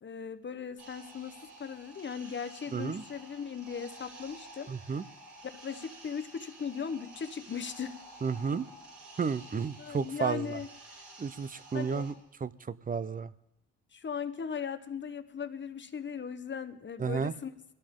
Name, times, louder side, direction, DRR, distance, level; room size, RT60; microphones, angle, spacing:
voice 1, 0.0-4.7 5.5-8.0 9.8-10.7 11.7-12.1 13.9-17.5, left 6 dB, 40° left, 10 dB, 1.1 m, -38 dB
sound 1, 0.8-12.1, right 2 dB, 80° right, 4.8 m, -51 dB
voice 2, 2.7-3.0 4.7-5.0 8.2-8.6 9.2-10.6 11.2-12.1 12.4-13.3 17.0-17.3, right 5 dB, 30° right, 16 dB, 0.7 m, -32 dB
22.0 x 17.0 x 3.7 m, 0.90 s
cardioid pair, 90°, 30 cm